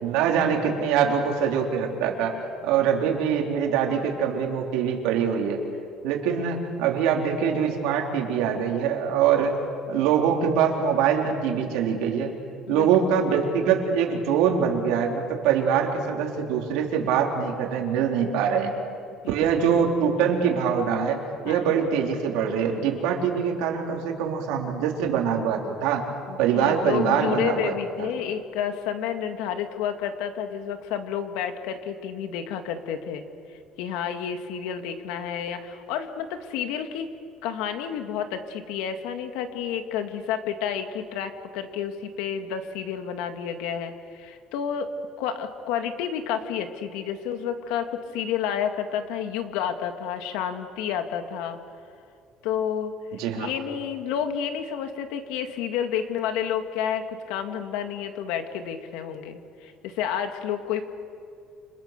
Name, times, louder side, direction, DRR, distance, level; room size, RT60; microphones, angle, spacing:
voice 1, 0.0-5.6 6.0-9.5 9.9-12.3 12.7-18.7 19.3-21.2 21.4-26.0 26.4-28.1 53.2-53.5, right 7 dB, 85° right, 1 dB, 4.1 m, -24 dB
voice 2, 12.7-13.1 19.2-19.8 21.4-21.7 26.3-33.2 33.5-37.1 37.4-44.9 45.2-51.6 52.4-52.9 53.3-60.8, left 8 dB, 90° left, 7 dB, 2.3 m, -30 dB
30.0 x 26.0 x 6.9 m, 2.4 s
cardioid pair, 160°, 0 cm